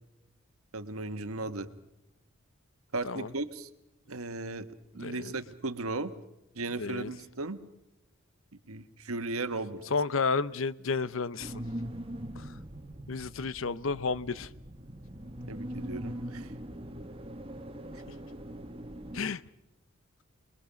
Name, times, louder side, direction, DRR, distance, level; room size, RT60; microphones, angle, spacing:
voice 1, 0.7-1.7 2.9-3.7 4.1-4.7 4.9-6.1 6.5-7.6 8.7-9.8 15.5-16.5 17.9-18.0, right 3 dB, 90° right, 10 dB, 1.4 m, -36 dB
voice 2, 5.0-5.3 6.8-7.1 9.9-11.5 12.4-12.5 13.1-14.5 19.1-19.4, left 4 dB, 70° left, 18 dB, 0.7 m, -31 dB
sound 1, 11.4-19.2, equal, 25° right, 1.4 m, -41 dB
27.5 x 21.5 x 5.2 m, 0.91 s
head